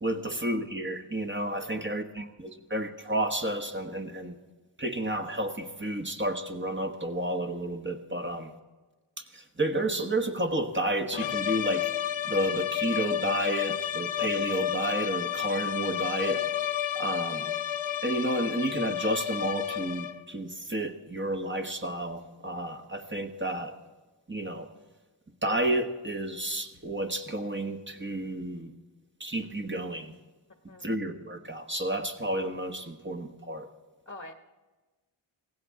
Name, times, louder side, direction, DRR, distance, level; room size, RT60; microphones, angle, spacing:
voice 1, 0.0-4.3 4.8-8.5 9.2-11.9 12.2-16.4 16.9-17.5 18.0-23.7 24.3-24.7 25.4-28.7 29.2-30.1 30.8-33.7, right 1 dB, 25° right, 5 dB, 1.3 m, -31 dB
voice 2, 1.5-2.0 30.7-30.9 34.1-34.3, left 2 dB, 25° left, 5 dB, 1.1 m, -45 dB
sound 1, 11.1-20.3, left 11 dB, 70° left, 0.7 m, -31 dB
17.0 x 15.5 x 3.8 m, 1.2 s
cardioid pair, 50°, 49 cm